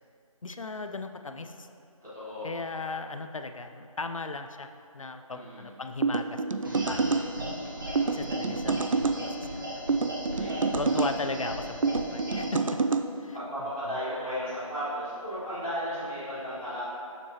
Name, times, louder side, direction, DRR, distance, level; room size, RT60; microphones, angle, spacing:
voice 1, 0.4-1.7 2.4-7.3 7.9-9.5 10.8-12.8 13.2-13.4, left 3 dB, 65° left, 8 dB, 0.4 m, -37 dB
voice 2, 2.0-2.5 5.3-5.6 7.7-8.2 10.3-10.6 13.3-16.8, equal, 5° right, -19 dB, 0.7 m, -35 dB
sound 1, 6.0-7.3 8.0-9.2 9.9-11.1 11.8-13.0, right 4 dB, 65° right, 0.4 m, -27 dB
sound 2, 6.6-12.6, equal, 35° right, 0.9 m, -37 dB
7.0 x 6.7 x 2.9 m, 2.5 s
figure-of-eight pair, 170°, 18 cm